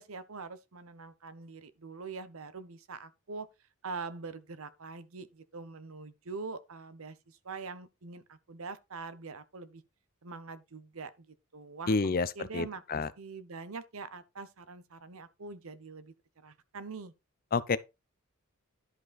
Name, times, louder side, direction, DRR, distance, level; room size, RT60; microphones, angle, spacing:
voice 1, 0.0-3.5 3.8-9.8 10.2-17.1, right 4 dB, 70° right, 0.8 m, -44 dB
voice 2, 11.9-13.1 17.5-17.8, left 4 dB, 40° left, 0.6 m, -29 dB
11.0 x 5.1 x 4.0 m
head